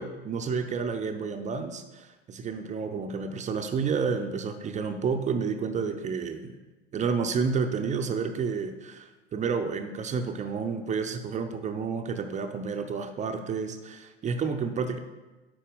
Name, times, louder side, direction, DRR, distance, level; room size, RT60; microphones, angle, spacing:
voice 1, 0.0-6.6 6.9-15.0, right 5 dB, 20° right, 6 dB, 0.5 m, -30 dB
9.6 x 4.2 x 3.8 m, 1.2 s
figure-of-eight pair, 75°, 34 cm